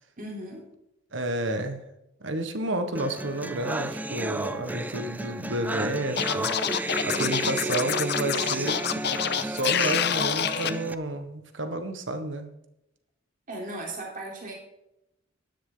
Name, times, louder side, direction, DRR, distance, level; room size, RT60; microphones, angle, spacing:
voice 1, 0.2-0.6 7.1-7.7 13.5-14.5, right 1 dB, 45° right, -1 dB, 3.7 m, -37 dB
voice 2, 1.1-1.8 2.2-6.5 7.0-12.5, right 1 dB, 65° right, 8 dB, 1.5 m, -31 dB
sound 1, 3.0-10.9, right 2 dB, 10° right, 0.4 m, -33 dB
Scratching (performance technique), 6.2-10.7, left 9 dB, 55° left, 0.7 m, -27 dB
13.5 x 10.5 x 3.9 m, 0.86 s
head